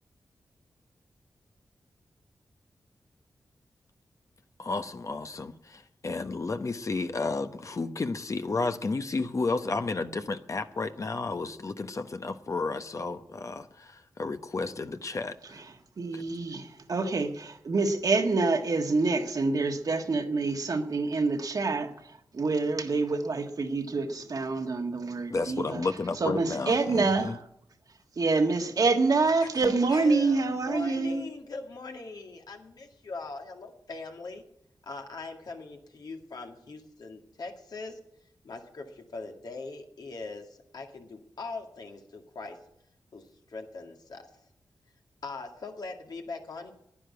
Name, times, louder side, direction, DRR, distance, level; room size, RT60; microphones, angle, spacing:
voice 1, 4.6-15.3 16.1-16.2 25.3-27.4, left 3 dB, 50° left, 9 dB, 1.0 m, -32 dB
voice 2, 16.0-21.9 22.3-25.8 26.2-27.4 28.2-31.2, right 3 dB, 60° right, 5 dB, 1.6 m, -26 dB
voice 3, 29.4-34.4 34.8-38.0 38.4-42.6 43.1-44.3 45.2-46.7, left 3 dB, 70° left, 2 dB, 2.1 m, -41 dB
10.0 x 10.0 x 9.5 m, 0.77 s
cardioid pair, 50°, 7 cm